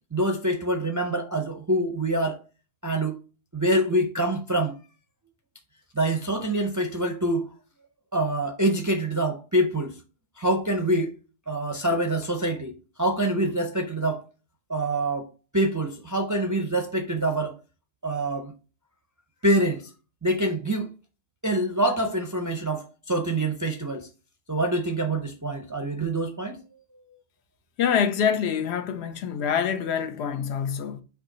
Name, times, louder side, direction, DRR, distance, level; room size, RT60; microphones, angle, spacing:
voice 1, 0.1-2.4 2.8-3.2 3.5-4.8 5.9-7.5 8.1-10.0 10.4-11.1 11.5-14.2 14.7-15.3 15.5-17.5 18.0-18.5 19.4-19.9 20.2-20.9 21.4-24.1 24.5-26.6, right 1 dB, 30° right, 0.3 m, -25 dB
voice 2, 27.8-31.0, left 7 dB, 80° left, 0.9 m, -25 dB
4.8 x 2.9 x 3.8 m
omnidirectional pair, 1.1 m